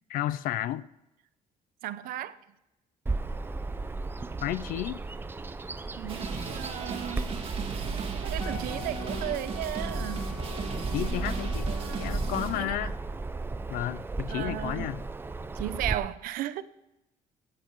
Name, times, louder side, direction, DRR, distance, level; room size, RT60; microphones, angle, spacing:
voice 1, 0.1-0.8 4.4-5.0 10.9-13.0 13.7-15.0, left 13 dB, 80° left, 0.6 m, -32 dB
voice 2, 1.8-2.4 6.0-7.4 8.2-10.3 11.7-12.9 14.3-14.9 15.6-16.6, right 13 dB, 85° right, 0.7 m, -35 dB
Bird vocalization bird call bird song, 3.1-16.0, right 3 dB, 15° right, 0.6 m, -35 dB
sound 1, 6.1-12.6, right 5 dB, 40° right, 1.8 m, -37 dB
Wind instrument woodwind instrument, 8.4-12.3, left 6 dB, 25° left, 2.4 m, -45 dB
16.5 x 7.7 x 4.7 m
cardioid pair, 130°, 14 cm